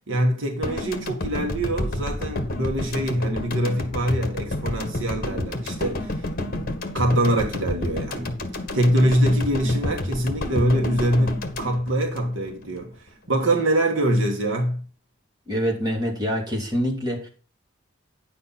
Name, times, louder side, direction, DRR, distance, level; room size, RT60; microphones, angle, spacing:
voice 1, 0.1-8.3 8.7-14.9, right 1 dB, 65° right, 1.8 m, -24 dB
sound 1, 0.6-12.8, left 1 dB, 45° left, 1.6 m, -30 dB
voice 2, 15.5-17.3, equal, 20° right, 3.0 m, -25 dB
10.0 x 7.2 x 4.2 m
head